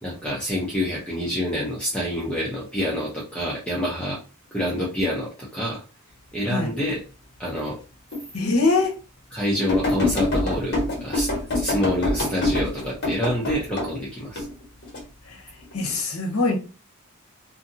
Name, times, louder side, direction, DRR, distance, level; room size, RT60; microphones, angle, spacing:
voice 1, 0.0-4.2 4.5-5.8 6.3-7.0 7.4-7.8 9.3-14.4, left 1 dB, 5° left, -6 dB, 0.6 m, -27 dB
sound 1, 8.1-8.2 8.8-8.9 9.7-13.9 14.3-15.0 15.6-16.0, left 1 dB, 50° left, 1.2 m, -25 dB
voice 2, 8.3-8.9 15.3-15.4 15.7-16.6, left 3 dB, 75° left, 3 dB, 0.8 m, -22 dB
2.7 x 2.5 x 2.6 m, 0.33 s
head